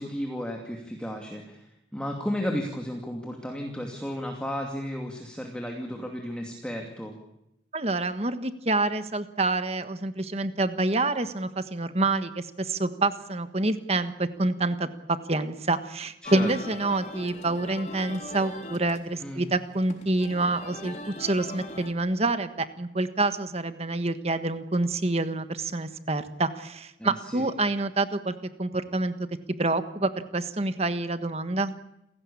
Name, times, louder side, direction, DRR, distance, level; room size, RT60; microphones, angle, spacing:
voice 1, 0.0-1.7 1.9-7.2 16.2-16.5 19.2-19.4 27.0-27.4, equal, 5° left, 2 dB, 2.6 m, -33 dB
voice 2, 7.7-14.9 15.3-29.1 29.6-31.7, right 2 dB, 35° right, 10 dB, 1.4 m, -27 dB
sound 1, 16.2-21.9, left 2 dB, 35° left, 3.3 m, -40 dB
28.5 x 17.0 x 8.7 m, 0.85 s
head